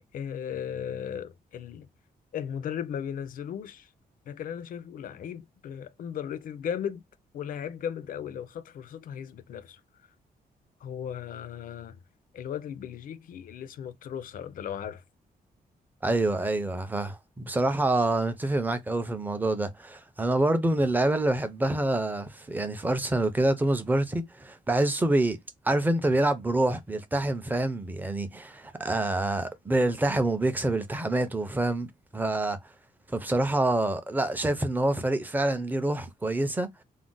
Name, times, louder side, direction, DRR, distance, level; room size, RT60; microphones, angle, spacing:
voice 1, 0.0-1.9 2.3-3.9 4.3-7.0 7.3-9.8 10.8-12.0 12.3-15.0, left 8 dB, 60° left, 0.4 m, -36 dB
voice 2, 16.0-25.4 25.6-32.6 33.1-36.7, right 2 dB, 10° right, 0.4 m, -26 dB
2.4 x 2.0 x 3.7 m
wide cardioid pair, 155°, 16 cm